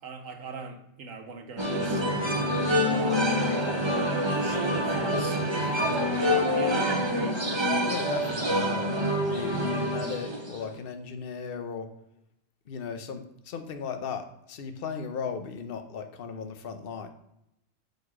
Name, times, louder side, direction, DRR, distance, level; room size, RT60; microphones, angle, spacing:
voice 1, 0.0-2.5 2.8-6.2 6.6-7.0, right 4 dB, 85° right, 5 dB, 1.4 m, -40 dB
sound 1, 1.6-10.7, equal, 25° right, 0.9 m, -26 dB
voice 2, 7.8-8.8 9.3-11.9 12.7-17.1, left 6 dB, 50° left, 7 dB, 0.9 m, -36 dB
6.7 x 4.8 x 4.8 m, 0.81 s
omnidirectional pair, 1.3 m